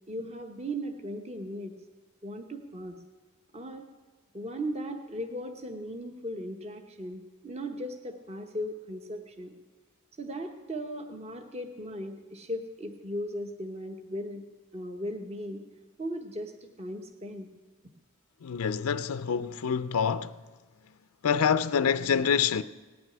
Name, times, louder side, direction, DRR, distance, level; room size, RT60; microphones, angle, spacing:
voice 1, 0.1-1.7 2.2-3.0 3.5-3.9 4.3-9.5 10.2-14.4 14.7-15.6 16.0-16.5 16.8-17.5, equal, 30° right, 0.8 m, -37 dB
voice 2, 18.4-20.4 21.2-22.6, left 7 dB, 85° left, 0.5 m, -26 dB
17.5 x 6.1 x 9.5 m
head